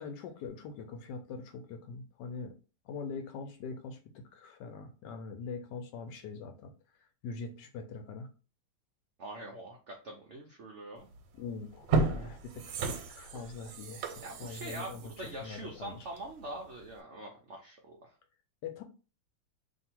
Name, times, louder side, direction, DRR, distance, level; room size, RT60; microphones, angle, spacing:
voice 1, 0.0-2.5 2.8-6.7 7.0-8.3 11.4-14.1 14.4-15.1 15.4-16.1 18.6-18.8, left 4 dB, 75° left, 6 dB, 1.1 m, -43 dB
voice 2, 9.2-11.1 14.2-18.1, right 1 dB, 70° right, 0 dB, 0.6 m, -44 dB
sound 1, 11.1-11.3 11.7-16.4 16.8-16.9, right 4 dB, 85° right, 1.3 m, -34 dB
2.7 x 2.7 x 4.3 m, 0.34 s
omnidirectional pair, 2.0 m